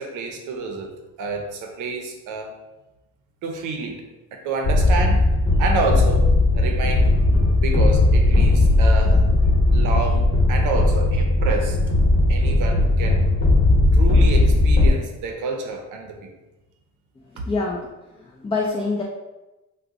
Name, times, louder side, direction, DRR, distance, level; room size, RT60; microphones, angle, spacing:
voice 1, 0.0-2.5 3.4-4.1 4.3-5.3 5.6-6.3 6.5-9.3 9.7-11.8 12.3-13.3 13.9-16.3 17.4-17.5, right 3 dB, 90° right, 3 dB, 0.6 m, -29 dB
sound 1, 4.6-14.9, left 2 dB, 45° left, 1.0 m, -17 dB
voice 2, 17.5-17.9 18.4-19.0, left 3 dB, 20° left, -2 dB, 0.4 m, -24 dB
2.5 x 2.2 x 3.8 m, 1.0 s
cardioid pair, 90°, 30 cm